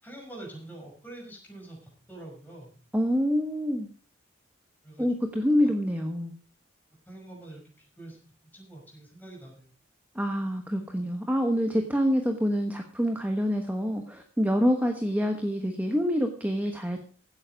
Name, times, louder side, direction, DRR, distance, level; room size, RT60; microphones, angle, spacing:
voice 1, 0.0-2.7 4.8-5.1 7.1-8.2 8.5-9.7, right 2 dB, 10° left, -1 dB, 5.9 m, -45 dB
voice 2, 2.9-3.9 5.0-6.3 10.1-17.0, equal, 10° right, 5 dB, 1.2 m, -26 dB
16.5 x 9.1 x 5.2 m, 0.40 s
head